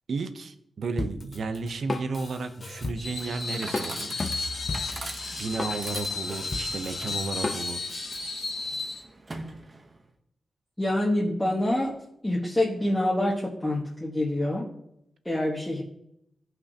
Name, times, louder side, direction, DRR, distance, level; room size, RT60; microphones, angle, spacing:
voice 1, 0.1-4.3 5.4-7.9, right 4 dB, 60° right, 9 dB, 0.8 m, -33 dB
Drum kit, 1.0-8.2, left 3 dB, 35° left, 0.6 m, -35 dB
Screech, 3.0-9.0, left 3 dB, 50° left, 2.5 m, -34 dB
Chatter / Coin (dropping), 3.0-10.1, right 2 dB, 25° right, 0.9 m, -43 dB
voice 2, 10.8-11.9 12.2-14.6 15.2-15.8, left 1 dB, 10° left, -5 dB, 1.4 m, -26 dB
16.5 x 5.6 x 2.8 m, 0.79 s
wide cardioid pair, 140°, 0 cm